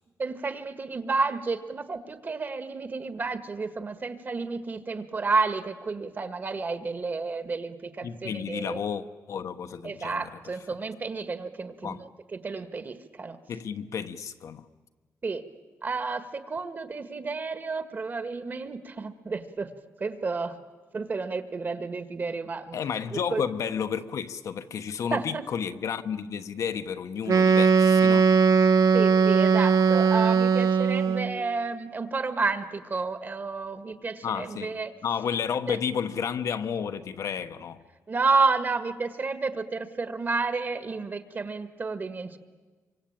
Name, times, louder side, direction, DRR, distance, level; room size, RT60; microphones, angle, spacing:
voice 1, 0.2-8.8 9.8-13.4 15.2-15.4 15.8-19.7 20.0-20.6 20.9-22.8 23.1-23.4 25.1-25.4 28.9-34.9 35.7-35.8 38.1-42.4, right 4 dB, 35° right, 1.6 m, -31 dB
voice 2, 8.0-10.3 11.8-12.0 13.5-14.6 22.7-28.3 34.2-34.8 35.0-37.8, left 7 dB, 70° left, 1.2 m, -31 dB
Wind instrument woodwind instrument, 27.3-31.4, right 5 dB, 75° right, 1.3 m, -20 dB
26.5 x 24.5 x 8.8 m
wide cardioid pair, 140°, 6 cm